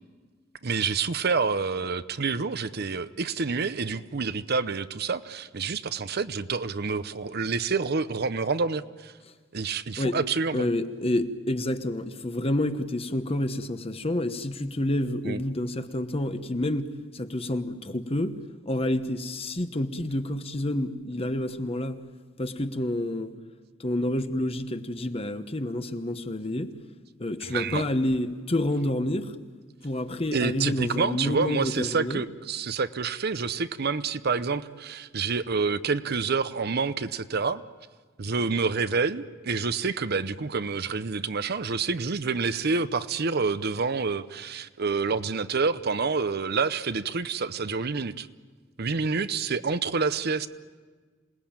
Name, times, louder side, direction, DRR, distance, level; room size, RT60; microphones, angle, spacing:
voice 1, 0.6-9.1 9.5-10.7 15.2-15.4 27.5-27.9 30.3-37.6 38.2-48.3 48.8-50.5, right 4 dB, 55° right, 0.8 m, -28 dB
voice 2, 10.5-22.0 22.4-23.3 23.8-26.7 27.2-29.3 29.8-32.2, left 1 dB, 30° left, 1.1 m, -29 dB
27.0 x 19.0 x 8.8 m
head